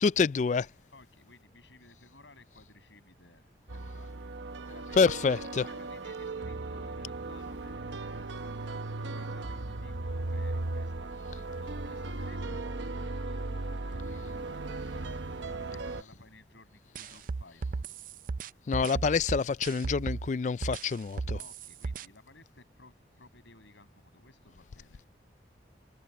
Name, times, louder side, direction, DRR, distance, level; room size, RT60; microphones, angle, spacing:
voice 1, 0.0-0.7 5.0-5.6 18.7-21.4, left 5 dB, 40° left, 0.3 m, -27 dB
voice 2, 0.9-18.0 21.3-25.1, left 2 dB, 90° left, 7.3 m, -57 dB
sound 1, 3.7-16.0, right 2 dB, 85° right, 1.0 m, -37 dB
sound 2, 16.9-20.3 20.6-22.0, right 4 dB, 45° right, 0.4 m, -35 dB
head